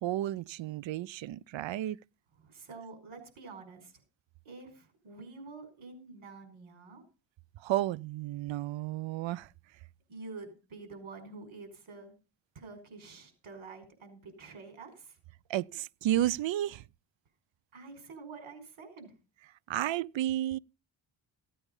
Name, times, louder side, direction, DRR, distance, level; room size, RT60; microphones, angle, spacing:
voice 1, 0.0-2.0 7.6-9.5 15.5-16.8 19.7-20.6, right 13 dB, 70° right, 0.5 m, -32 dB
voice 2, 2.4-3.9 4.5-7.0 10.1-12.1 12.6-15.2 17.7-19.1, right 3 dB, 85° right, 5.4 m, -48 dB
16.0 x 8.5 x 5.3 m
cardioid pair, 100°, 47 cm